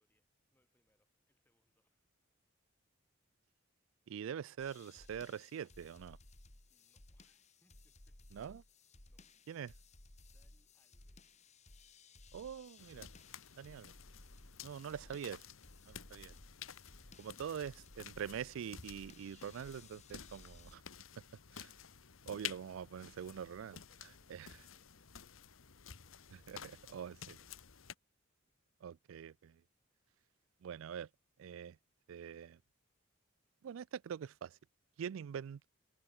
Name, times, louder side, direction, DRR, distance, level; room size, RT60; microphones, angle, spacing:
voice 1, 0.0-2.1 6.7-8.2 9.1-9.6 10.2-11.4, left 1 dB, 10° left, 7.2 m, -81 dB
voice 2, 4.1-6.2 8.3-8.6 9.5-9.7 12.3-13.1 13.6-13.9 14.6-15.4 15.9-16.3 17.2-20.8 21.5-21.7 22.3-23.8 24.3-24.5 26.5-27.1 28.8-29.6 30.6-31.1 31.4-31.8 32.1-32.6 33.6-34.6 35.0-35.7, right 8 dB, 80° right, 0.3 m, -44 dB
sound 1, 4.6-20.8, left 2 dB, 35° left, 2.3 m, -60 dB
sound 2, 12.8-27.9, left 9 dB, 85° left, 1.3 m, -52 dB
head